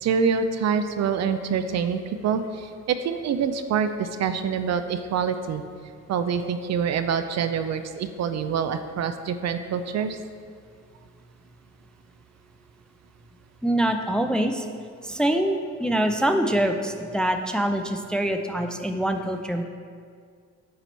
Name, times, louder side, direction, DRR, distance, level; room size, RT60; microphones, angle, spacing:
voice 1, 0.0-5.6 6.1-10.2, right 6 dB, 50° right, 9 dB, 0.5 m, -26 dB
voice 2, 13.6-14.6 15.0-19.6, right 1 dB, ahead, 6 dB, 0.4 m, -24 dB
8.5 x 3.0 x 5.3 m, 2.1 s
supercardioid pair, 65°, 34 cm